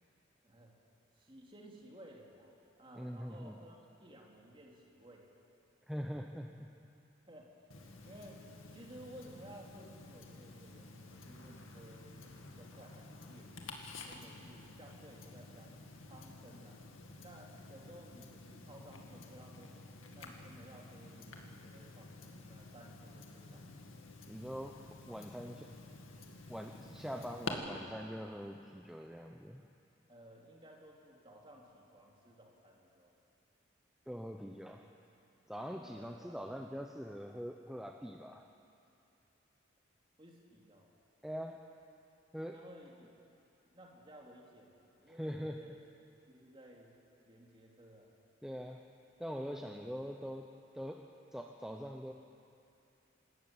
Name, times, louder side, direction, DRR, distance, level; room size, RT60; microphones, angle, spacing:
voice 1, 0.4-0.7 1.1-2.5 2.8-5.3 7.3-7.5 8.0-13.7 14.1-16.8 17.2-23.7 27.1-27.7 30.1-33.1 35.7-36.6 40.2-40.9 42.5-43.1 43.7-45.8 46.3-47.0 47.3-48.1 49.5-49.9, right 1 dB, 25° right, -2 dB, 3.0 m, -56 dB
voice 2, 3.0-3.6 5.9-6.7 24.3-25.7 26.5-29.6 34.1-34.8 35.5-38.5 41.2-41.6 42.3-42.6 45.1-45.6 48.4-48.8 49.2-52.1, equal, ahead, 2 dB, 0.7 m, -43 dB
Tick-tock, 7.7-27.5, left 3 dB, 85° left, 2.2 m, -51 dB
27.0 x 14.0 x 8.9 m, 2.7 s
head